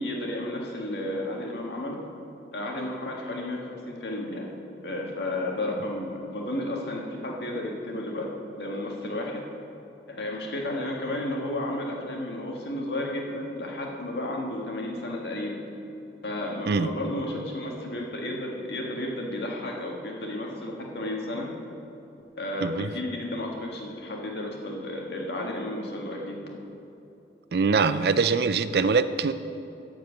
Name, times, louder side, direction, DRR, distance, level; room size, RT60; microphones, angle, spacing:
voice 1, 0.0-2.0 2.5-4.5 4.8-8.3 8.6-9.4 10.1-15.6 16.2-21.5 22.4-26.4, left 1 dB, 75° left, -1 dB, 1.7 m, -32 dB
voice 2, 27.5-29.3, right 5 dB, 65° right, 12 dB, 0.4 m, -23 dB
12.5 x 4.7 x 8.1 m, 2.9 s
head